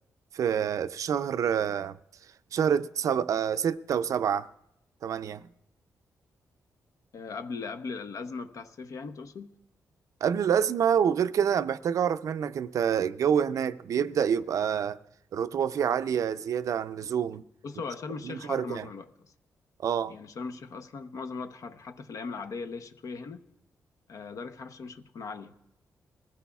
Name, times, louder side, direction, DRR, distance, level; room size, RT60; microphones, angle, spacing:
voice 1, 0.3-2.0 2.5-4.5 5.0-5.5 10.2-15.0 15.3-17.4 18.2-18.9 19.8-20.1, right 8 dB, 65° right, 0.4 m, -27 dB
voice 2, 7.1-9.5 17.6-19.1 20.1-23.4 24.1-25.5, left 4 dB, 65° left, 0.8 m, -39 dB
21.5 x 15.0 x 2.3 m
cardioid pair, 100°, 6 cm